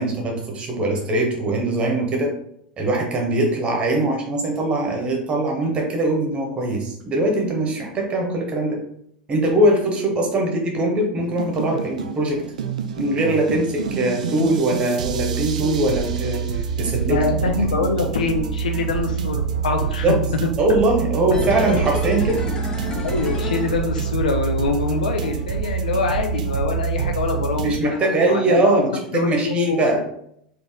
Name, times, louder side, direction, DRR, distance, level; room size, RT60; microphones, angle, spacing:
voice 1, 0.0-2.3 2.8-8.8 9.3-12.4 13.0-17.2 17.7-17.8 20.0-20.2 20.6-22.4 27.6-30.0, right 1 dB, 25° right, 1 dB, 1.2 m, -21 dB
sound 1, 11.2-27.8, right 7 dB, 65° right, 0.4 m, -26 dB
voice 2, 17.1-20.5 23.0-28.7 29.1-30.0, left 4 dB, 70° left, 4 dB, 0.6 m, -24 dB
sound 2, 21.3-24.5 24.7-24.8, left 3 dB, 20° left, 0.9 m, -30 dB
4.0 x 2.8 x 3.6 m, 0.71 s
figure-of-eight pair, 85°, 4 cm